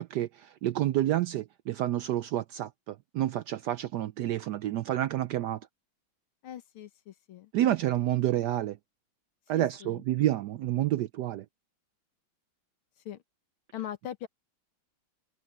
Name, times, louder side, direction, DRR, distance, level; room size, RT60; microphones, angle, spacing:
voice 1, 0.0-5.6 7.5-8.8 9.5-11.5, right 13 dB, 75° right, 1.0 m, -29 dB
voice 2, 6.4-7.5 9.5-10.0 13.1-13.2 13.7-14.3, left 11 dB, 85° left, 2.0 m, -41 dB
omnidirectional pair, 2.2 m